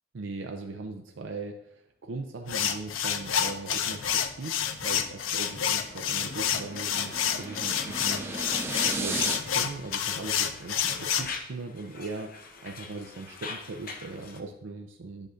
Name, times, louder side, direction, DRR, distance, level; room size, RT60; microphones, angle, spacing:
voice 1, 0.1-15.3, right 3 dB, 75° right, 4 dB, 0.5 m, -39 dB
sound 1, 2.5-11.4, left 8 dB, 85° left, 0.5 m, -29 dB
sound 2, 5.1-9.4, right 2 dB, 10° right, 0.4 m, -36 dB
Conversation, 5.8-14.4, left 4 dB, 45° left, 0.7 m, -45 dB
10.5 x 6.4 x 2.5 m, 0.84 s
head